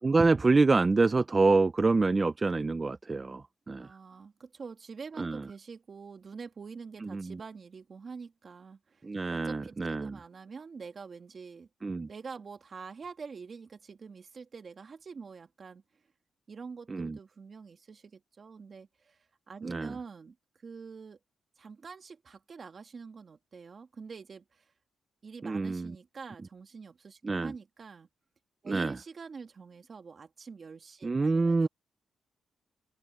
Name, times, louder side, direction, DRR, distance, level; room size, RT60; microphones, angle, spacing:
voice 1, 0.0-3.9 5.2-5.4 7.0-7.4 9.0-10.1 11.8-12.1 16.9-17.2 19.6-19.9 25.4-26.0 27.2-27.5 28.7-28.9 31.0-31.7, right 3 dB, 25° right, 0.5 m, -26 dB
voice 2, 3.8-11.7 12.1-15.8 16.5-21.2 21.6-24.7 25.2-28.1 28.6-31.7, right 5 dB, 40° right, 2.3 m, -46 dB
open air
cardioid pair, 125°, 0 cm